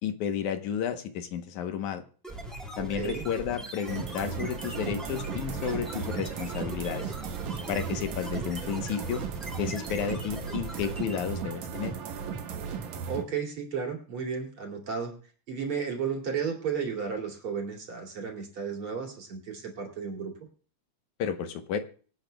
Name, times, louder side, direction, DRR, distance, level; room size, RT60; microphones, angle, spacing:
voice 1, 0.0-2.0 2.8-7.1 7.7-9.2 9.6-11.9 21.2-21.8, left 8 dB, 80° left, 8 dB, 2.4 m, -32 dB
sound 1, 2.2-11.4, right 1 dB, ahead, 3.2 m, -41 dB
voice 2, 2.8-3.2 13.1-15.1 15.5-20.3, right 6 dB, 45° right, 1 dB, 3.4 m, -33 dB
sound 2, 3.9-13.3, right 6 dB, 75° right, 2.5 m, -36 dB
25.0 x 9.0 x 2.3 m, 0.42 s
omnidirectional pair, 3.4 m